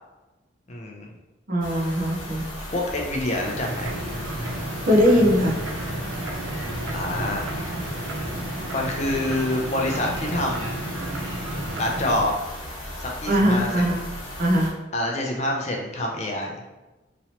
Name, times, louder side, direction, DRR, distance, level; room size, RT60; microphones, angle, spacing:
voice 1, 0.7-1.1 2.7-4.0 6.9-7.4 8.7-10.7 11.8-12.4 13.0-13.8 14.9-16.6, left 1 dB, 35° left, 0 dB, 0.4 m, -26 dB
voice 2, 1.5-2.4 4.8-5.6 13.2-14.0 14.4-14.7, equal, 45° right, -3 dB, 0.7 m, -20 dB
sound 1, 1.6-14.7, left 1 dB, 80° left, 1.0 m, -37 dB
sound 2, 3.3-12.2, right 1 dB, 85° right, 0.6 m, -32 dB
3.0 x 2.8 x 2.8 m, 1.1 s
head